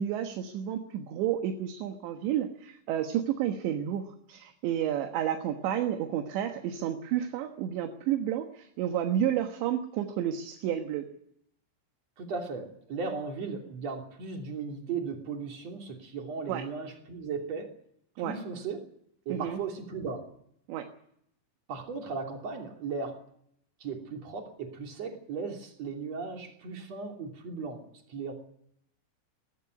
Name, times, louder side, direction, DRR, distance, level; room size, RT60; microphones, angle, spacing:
voice 1, 0.0-4.0 4.3-11.1 16.5-16.7 18.2-18.4 19.3-19.6 20.7-20.9, right 10 dB, 75° right, 6 dB, 3.5 m, -31 dB
voice 2, 12.2-17.8 18.2-18.9 19.3-20.3 21.7-23.2 23.8-28.3, right 5 dB, 40° right, 3 dB, 3.5 m, -37 dB
20.0 x 15.0 x 9.7 m, 0.72 s
omnidirectional pair, 5.4 m